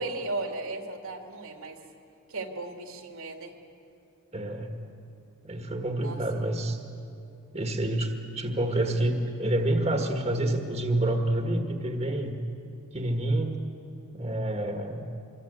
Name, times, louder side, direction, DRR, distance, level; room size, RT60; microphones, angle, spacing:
voice 1, 0.0-1.8 2.3-3.5 6.0-6.2, right 2 dB, 85° right, 3 dB, 2.8 m, -35 dB
voice 2, 4.3-4.8 5.4-6.8 7.5-12.4 12.9-13.6 14.1-15.1, right 1 dB, 30° right, 3 dB, 1.6 m, -28 dB
25.0 x 23.5 x 8.1 m, 2.6 s
head